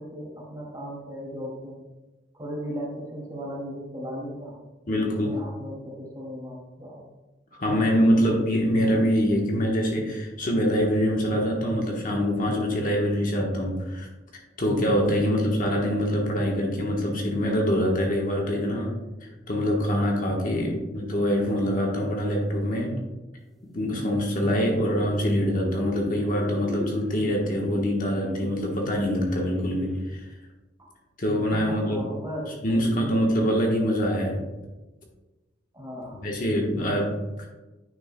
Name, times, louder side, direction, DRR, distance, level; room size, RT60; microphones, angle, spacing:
voice 1, 0.0-1.8 2.3-4.6 4.9-7.0 7.6-8.4 15.1-15.4 20.5-21.0 31.5-33.2 35.7-36.2, equal, 20° right, -4 dB, 2.4 m, -37 dB
voice 2, 4.9-5.4 7.5-14.1 14.6-18.9 19.2-23.0 23.7-30.3 31.2-32.0 32.6-34.4 36.2-37.5, equal, 45° left, 0 dB, 1.2 m, -24 dB
sound 1, 23.7-30.2, equal, ahead, 0.7 m, -39 dB
9.2 x 6.3 x 2.2 m, 1.1 s
head